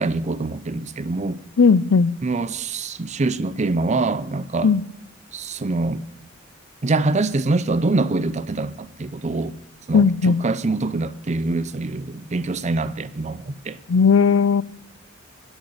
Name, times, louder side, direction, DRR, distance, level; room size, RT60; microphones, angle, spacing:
voice 1, 0.0-1.4 2.2-4.7 5.3-6.0 6.8-9.6 9.9-13.8, right 3 dB, 35° right, 0.5 m, -24 dB
voice 2, 1.6-2.1 4.6-4.8 9.9-10.4 13.9-14.6, left 5 dB, 90° left, 0.5 m, -16 dB
10.5 x 8.1 x 9.6 m
head